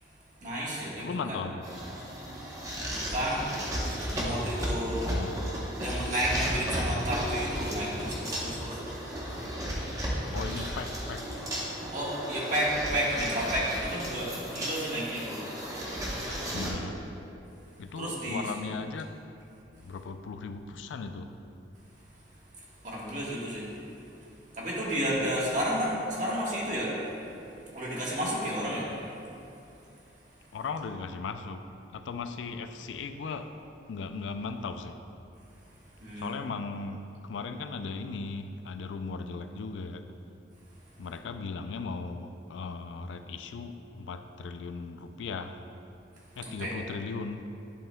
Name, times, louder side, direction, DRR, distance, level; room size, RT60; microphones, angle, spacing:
voice 1, 0.0-1.4 2.4-2.5 2.9-3.5 4.1-5.1 5.8-10.2 11.9-15.4 16.2-16.5 17.9-18.5 19.8-19.9 22.5-27.1 27.5-28.9 30.3-30.4 35.7-36.3 46.4-46.7, equal, 45° right, -5 dB, 1.4 m, -32 dB
voice 2, 1.0-1.7 5.0-5.4 10.3-11.3 16.5-17.0 17.8-19.1 19.8-21.3 30.5-31.6 31.9-33.5 33.9-35.0 36.2-40.0 41.0-45.6 46.4-47.4, left 4 dB, 80° left, 8 dB, 0.4 m, -37 dB
sound 1, 1.6-16.7, equal, 20° right, 0.9 m, -34 dB
10.5 x 5.5 x 2.2 m, 2.8 s
head